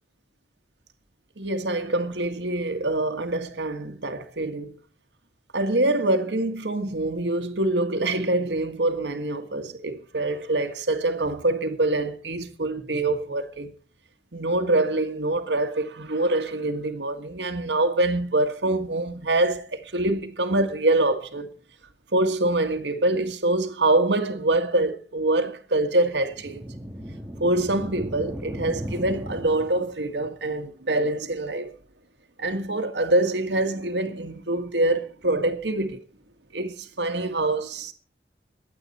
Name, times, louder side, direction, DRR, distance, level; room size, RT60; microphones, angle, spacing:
voice 1, 1.4-4.8 5.5-13.7 14.3-21.5 22.1-26.6 27.4-31.7 32.4-36.0 36.5-37.9, right 2 dB, 85° right, 1.8 m, -25 dB
sound 1, 26.2-30.1, equal, 10° right, 1.7 m, -36 dB
22.0 x 8.7 x 4.4 m
head